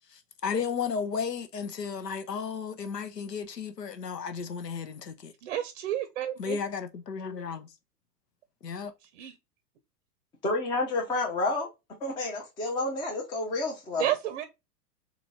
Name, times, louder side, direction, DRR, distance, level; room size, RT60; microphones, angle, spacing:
voice 1, 0.1-5.3 6.4-7.7 8.6-8.9, left 6 dB, 75° left, 0.8 m, -34 dB
voice 2, 5.4-6.6 9.0-9.4 14.0-14.4, right 12 dB, 45° right, 0.6 m, -31 dB
voice 3, 10.4-11.7 12.0-14.1, left 2 dB, 10° left, 0.5 m, -29 dB
3.8 x 3.2 x 3.6 m
figure-of-eight pair, 95°, 48 cm